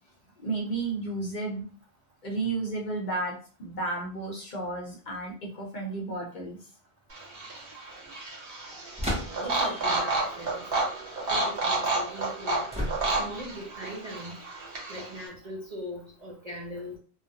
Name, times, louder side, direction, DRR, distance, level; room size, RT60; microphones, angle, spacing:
voice 1, 0.4-1.7 2.2-6.6 9.4-9.8, right 3 dB, 50° left, -1 dB, 0.7 m, -33 dB
sound 1, 7.1-15.3, right 2 dB, 65° right, 1.1 m, -31 dB
sound 2, 9.0-9.7 12.7-13.4, equal, 10° right, 0.6 m, -32 dB
voice 2, 9.4-10.6 11.3-12.6 13.0-14.4 14.9-17.0, equal, 45° right, -3 dB, 0.6 m, -40 dB
2.3 x 2.0 x 2.7 m, 0.39 s
omnidirectional pair, 1.1 m